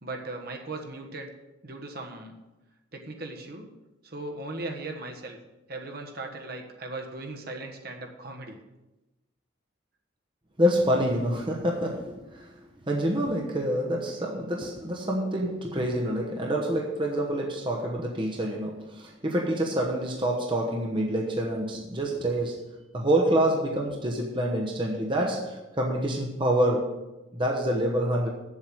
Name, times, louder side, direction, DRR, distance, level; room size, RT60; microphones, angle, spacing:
voice 1, 0.0-1.3 1.6-2.3 2.9-3.7 4.0-5.4 5.7-8.6, right 2 dB, 50° right, 2 dB, 1.3 m, -38 dB
voice 2, 10.6-12.5 12.9-27.0 27.3-28.3, right 1 dB, 25° right, -1 dB, 1.0 m, -27 dB
7.9 x 7.5 x 7.6 m, 1.0 s
head